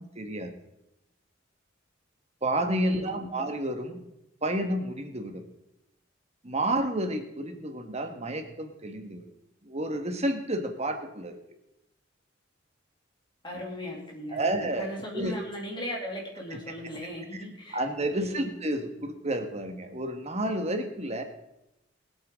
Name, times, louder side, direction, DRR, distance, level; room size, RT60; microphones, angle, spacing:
voice 1, 0.1-0.5 2.4-4.0 4.4-5.4 6.4-9.3 9.6-11.4 14.3-15.3 17.3-17.4 17.7-21.2, right 1 dB, 35° right, 6 dB, 1.5 m, -30 dB
voice 2, 2.8-3.3 13.4-14.5 14.8-17.8 18.1-18.5, equal, 25° left, -2 dB, 2.7 m, -38 dB
22.0 x 8.3 x 3.7 m, 0.87 s
head